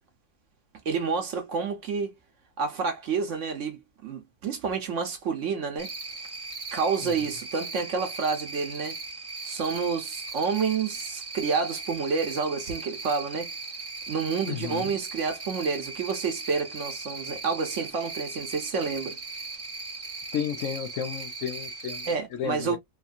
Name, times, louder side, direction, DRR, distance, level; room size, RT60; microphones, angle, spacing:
voice 1, 0.8-2.1 2.6-5.9 6.7-9.0 9.4-13.5 14.1-19.2 22.0-22.8, right 5 dB, 60° right, 0.9 m, -29 dB
Cricket, 5.8-22.1, right 3 dB, 25° right, 0.8 m, -38 dB
voice 2, 14.5-14.9 20.3-22.8, left 8 dB, 65° left, 0.8 m, -33 dB
3.0 x 2.4 x 2.4 m
omnidirectional pair, 1.6 m